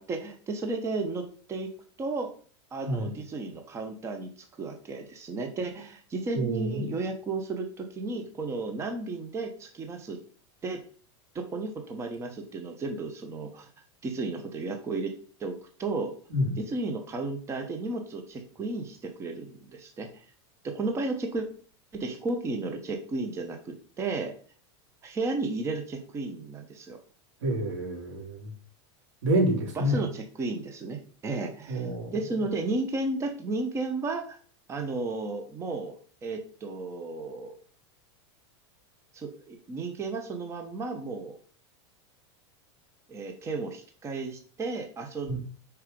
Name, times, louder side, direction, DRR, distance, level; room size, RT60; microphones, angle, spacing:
voice 1, 0.0-1.7 2.0-2.3 2.7-10.2 10.6-10.8 11.3-13.7 14.0-15.1 15.4-16.1 16.6-20.2 20.6-21.5 21.9-24.3 25.0-27.0 29.7-34.4 34.7-35.9 36.2-37.5 39.1-41.4 43.1-45.4, right 3 dB, 20° right, 4 dB, 1.0 m, -33 dB
voice 2, 6.3-6.9 16.3-16.5 27.4-28.5 29.2-30.0 31.7-32.1 45.3-45.4, right 1 dB, 85° right, -1 dB, 3.7 m, -28 dB
6.4 x 4.7 x 5.3 m, 0.43 s
supercardioid pair, 150°, 15 cm